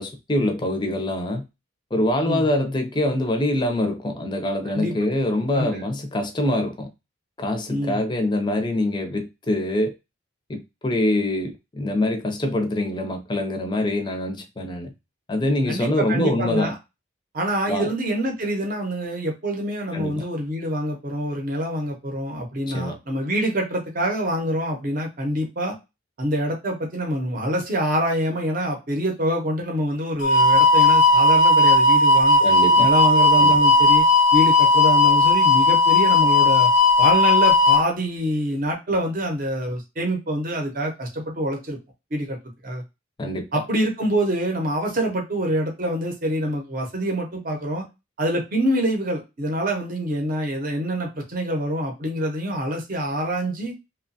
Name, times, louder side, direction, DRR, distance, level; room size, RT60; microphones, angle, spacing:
voice 1, 0.0-1.4 1.9-6.9 7.4-9.9 10.5-14.9 15.3-16.7 17.7-17.9 19.9-20.2 22.7-23.0 32.4-32.9 33.4-33.6 43.2-43.5, left 1 dB, 25° left, 0.5 m, -24 dB
voice 2, 7.7-8.0 15.7-16.7 17.3-25.8 26.2-32.4 32.8-34.0 34.3-36.7 37.0-41.8 42.1-42.4 42.6-42.8 43.5-47.8 48.2-53.7, equal, 45° right, 0.7 m, -25 dB
sound 1, 30.2-37.8, left 2 dB, 90° left, 0.5 m, -16 dB
2.9 x 2.2 x 2.6 m
head